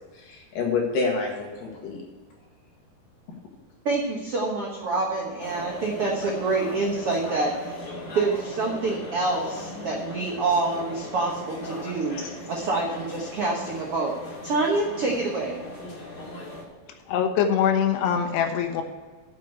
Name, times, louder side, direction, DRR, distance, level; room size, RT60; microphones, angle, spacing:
voice 1, 0.0-2.0 12.2-12.3, left 4 dB, 60° left, 0 dB, 3.3 m, -28 dB
voice 2, 3.8-7.9 8.1-12.2 12.5-14.1 14.4-15.6, right 3 dB, 75° right, -2 dB, 1.3 m, -26 dB
sound 1, 5.4-16.6, left 1 dB, 45° left, 1.4 m, -38 dB
voice 3, 17.1-18.8, left 8 dB, 85° left, 5 dB, 3.1 m, -23 dB
7.5 x 7.3 x 7.8 m, 1.4 s
omnidirectional pair, 4.6 m